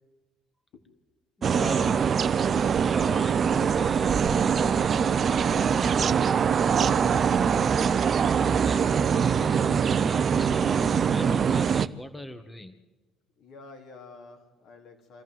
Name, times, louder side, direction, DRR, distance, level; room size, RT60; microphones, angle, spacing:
voice 1, 1.4-2.1 2.8-7.7 8.4-12.8, left 1 dB, 15° left, 8 dB, 1.8 m, -41 dB
sound 1, 1.4-11.9, right 7 dB, 45° right, 0.7 m, -23 dB
voice 2, 13.4-15.2, left 3 dB, 65° left, 3 dB, 3.5 m, -49 dB
25.5 x 14.5 x 7.9 m, 1.2 s
hypercardioid pair, 60°, 0 cm